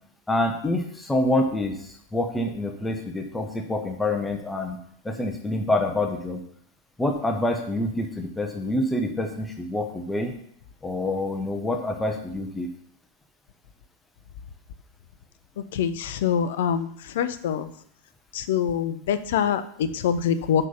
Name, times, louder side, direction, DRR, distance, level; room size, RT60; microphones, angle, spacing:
voice 1, 0.3-1.8 2.1-4.8 5.0-6.4 7.0-10.3 10.8-12.7, left 1 dB, 10° left, 4 dB, 1.0 m, -26 dB
voice 2, 15.7-16.9 17.2-17.7 18.3-20.7, left 8 dB, 55° left, 11 dB, 0.6 m, -24 dB
6.2 x 5.4 x 7.1 m, 0.65 s
figure-of-eight pair, 90°, 0 cm